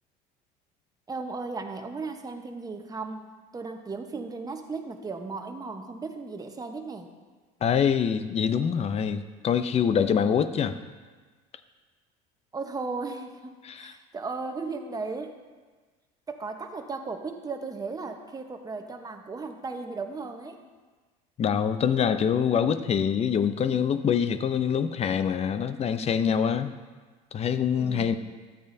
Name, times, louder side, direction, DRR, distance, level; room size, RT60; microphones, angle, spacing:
voice 1, 1.1-3.2 3.5-7.1 12.5-15.4 16.3-20.6 27.8-28.2, right 4 dB, 20° right, 5 dB, 1.0 m, -36 dB
voice 2, 7.6-10.8 13.6-13.9 21.4-26.7 27.3-28.1, left 7 dB, 35° left, 11 dB, 0.6 m, -25 dB
13.0 x 8.6 x 2.7 m, 1.4 s
supercardioid pair, 90°, 19 cm